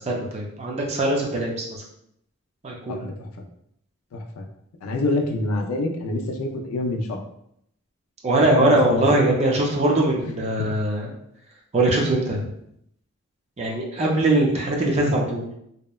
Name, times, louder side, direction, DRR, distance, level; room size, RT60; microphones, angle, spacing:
voice 1, 0.0-1.8 2.6-3.1 8.2-11.1 11.7-12.5 13.6-15.5, right 1 dB, 30° right, -1 dB, 0.4 m, -21 dB
voice 2, 2.9-3.3 4.1-4.4 4.8-7.2 8.5-9.2, left 2 dB, 85° left, 3 dB, 0.4 m, -26 dB
2.8 x 2.1 x 2.2 m, 0.74 s
head